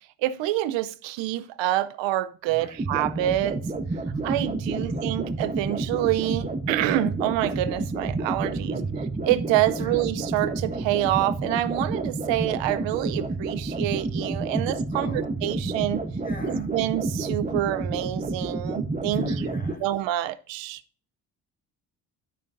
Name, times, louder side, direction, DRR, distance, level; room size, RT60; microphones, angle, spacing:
voice 1, 0.2-3.6 4.2-8.8 9.2-16.0 16.5-19.3 19.8-20.8, right 14 dB, 80° right, 0.6 m, -27 dB
voice 2, 2.5-2.8 4.7-5.0 8.7-9.0 9.8-10.0 14.9-15.3 16.2-16.7 19.1-19.9, left 1 dB, 20° left, 1.9 m, -39 dB
sound 1, 2.8-19.7, right 3 dB, 15° right, 1.0 m, -30 dB
12.5 x 5.3 x 2.6 m
supercardioid pair, 70°, 44 cm